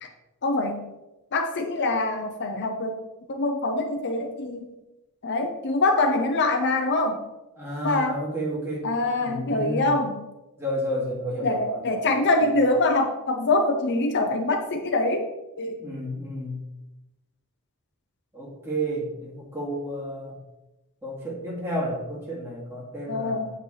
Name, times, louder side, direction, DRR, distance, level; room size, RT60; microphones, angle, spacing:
voice 1, 0.4-0.8 1.3-3.0 3.3-4.7 5.2-7.2 7.8-8.2 8.8-10.2 11.4-15.2 15.6-15.8 23.1-23.5, left 2 dB, 50° left, 4 dB, 0.7 m, -24 dB
voice 2, 7.6-8.9 9.2-9.9 10.6-12.0 12.4-12.5 15.8-16.6 18.3-20.3 21.0-23.5, right 1 dB, 10° right, -5 dB, 2.3 m, -31 dB
8.3 x 5.8 x 3.3 m, 1.0 s
head